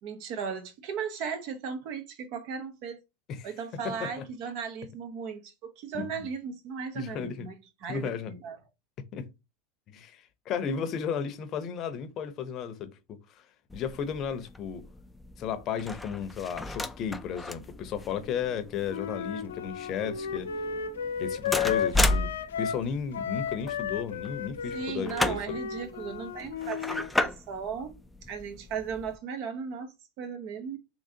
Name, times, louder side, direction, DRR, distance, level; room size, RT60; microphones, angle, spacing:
voice 1, 0.0-3.0 3.4-7.5 7.8-8.6 24.7-28.0 28.3-30.8, right 6 dB, 60° right, 0.9 m, -36 dB
voice 2, 3.3-4.2 5.9-6.1 6.9-7.5 7.9-8.3 9.1-9.3 9.9-13.5 13.7-14.9 15.4-20.5 21.2-25.6, left 7 dB, 45° left, 0.7 m, -34 dB
sound 1, 13.7-29.2, left 2 dB, 5° left, 0.3 m, -35 dB
Wind instrument woodwind instrument, 18.9-22.9 23.1-27.1, left 7 dB, 90° left, 0.4 m, -33 dB
3.7 x 2.9 x 2.8 m
hypercardioid pair, 100°, 0 cm